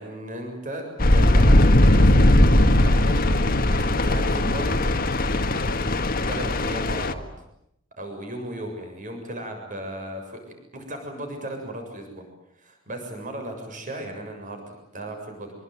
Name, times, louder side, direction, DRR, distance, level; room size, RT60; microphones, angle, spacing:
voice 1, 0.0-3.2 3.7-4.8 6.3-7.3 8.0-12.2 12.6-15.5, right 1 dB, 40° right, 4 dB, 7.2 m, -36 dB
sound 1, 1.0-7.1, left 1 dB, 45° left, 1.8 m, -19 dB
26.5 x 23.0 x 9.4 m, 0.77 s
head